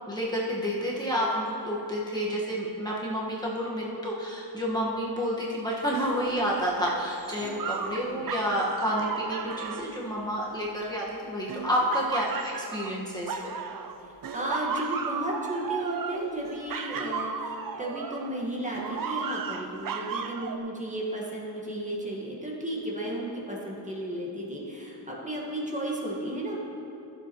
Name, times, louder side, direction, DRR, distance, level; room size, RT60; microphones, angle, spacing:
voice 1, 0.1-13.5, equal, 10° left, -5 dB, 1.5 m, -29 dB
sound 1, 5.9-10.9 11.5-14.0 14.2-18.4 18.7-20.6, right 6 dB, 50° right, 0.6 m, -35 dB
voice 2, 7.9-8.3 14.3-26.6, right 1 dB, 15° right, -3 dB, 1.6 m, -34 dB
15.0 x 7.5 x 3.1 m, 2.9 s
cardioid pair, 95°, 43 cm